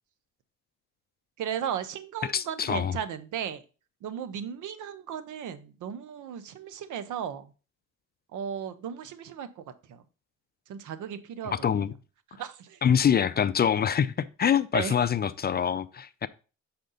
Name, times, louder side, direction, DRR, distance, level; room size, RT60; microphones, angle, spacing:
voice 1, 1.4-3.6 4.0-7.5 8.3-9.6 9.9-10.0 10.7-11.5 12.4-12.8 14.7-14.9, right 8 dB, 80° right, 0.8 m, -35 dB
voice 2, 2.2-3.0 11.5-11.9 12.8-16.3, left 8 dB, 35° left, 0.4 m, -25 dB
6.4 x 4.3 x 3.8 m
cardioid pair, 90°, 30 cm